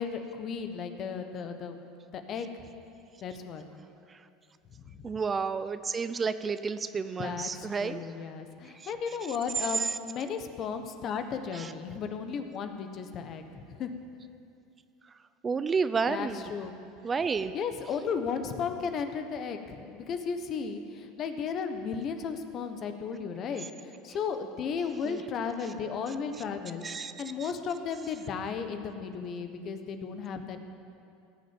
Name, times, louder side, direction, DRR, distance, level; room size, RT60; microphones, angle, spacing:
voice 1, 0.0-1.8 2.1-2.7 3.2-3.6 4.8-5.0 7.2-13.9 16.1-16.7 17.5-30.6, left 6 dB, 45° left, 7 dB, 1.3 m, -35 dB
voice 2, 5.0-8.0 8.8-8.9 9.7-9.9 11.5-11.7 15.4-16.5 17.0-17.5 25.0-25.2 26.8-27.1 27.4-27.5, right 5 dB, 25° right, 12 dB, 0.5 m, -31 dB
16.5 x 6.4 x 9.0 m, 2.5 s
hypercardioid pair, 90°, 0 cm